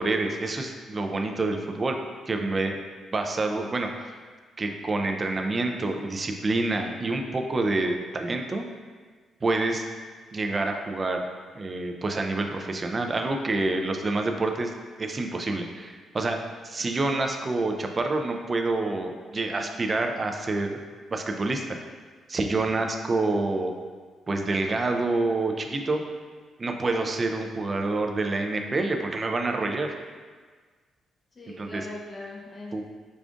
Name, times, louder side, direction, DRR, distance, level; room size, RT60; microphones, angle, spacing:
voice 1, 0.0-2.0 2.3-2.8 3.1-4.1 4.6-8.6 9.4-9.8 10.3-11.3 11.6-14.7 15.0-16.4 16.6-20.8 21.1-21.8 22.3-23.7 24.3-26.0 26.6-29.9 31.6-31.8 32.7-32.8, right 2 dB, 30° right, 4 dB, 0.4 m, -27 dB
voice 2, 22.6-22.9 31.3-32.8, left 1 dB, 35° left, -4 dB, 0.5 m, -41 dB
4.9 x 2.3 x 2.4 m, 1.5 s
cardioid pair, 90°, 0 cm